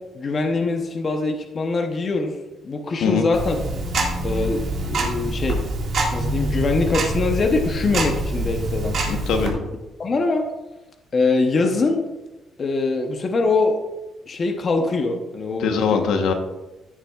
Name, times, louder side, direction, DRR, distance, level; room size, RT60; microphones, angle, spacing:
voice 1, 0.1-2.4 2.6-3.6 4.2-5.6 6.1-9.0 9.4-9.6 10.0-10.5 11.1-12.0 12.6-13.8 14.3-16.1, left 3 dB, 30° left, 3 dB, 0.8 m, -23 dB
Tick-tock, 3.3-9.5, right 2 dB, 50° right, 1.9 m, -25 dB
voice 2, 9.1-9.6 15.6-16.3, left 5 dB, 70° left, 5 dB, 1.0 m, -21 dB
14.5 x 7.2 x 2.4 m, 1.1 s
cardioid pair, 180°, 0 cm